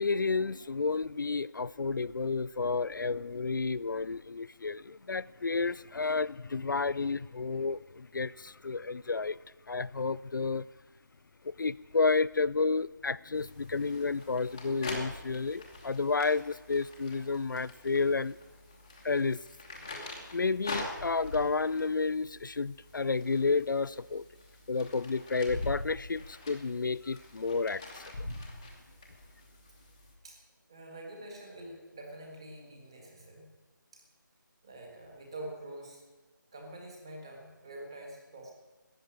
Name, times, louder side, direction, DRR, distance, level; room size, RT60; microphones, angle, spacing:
voice 1, 0.0-9.4 9.7-10.7 11.4-18.4 19.0-19.4 20.3-24.2 24.7-28.1, left 4 dB, 70° left, 0.4 m, -31 dB
sound 1, 13.3-30.1, left 2 dB, 10° left, 0.9 m, -44 dB
voice 2, 30.7-33.5 33.9-34.0 34.6-36.0 36.5-38.5, right 1 dB, 15° right, 1.6 m, -46 dB
13.5 x 9.0 x 9.9 m
figure-of-eight pair, 180°, 11 cm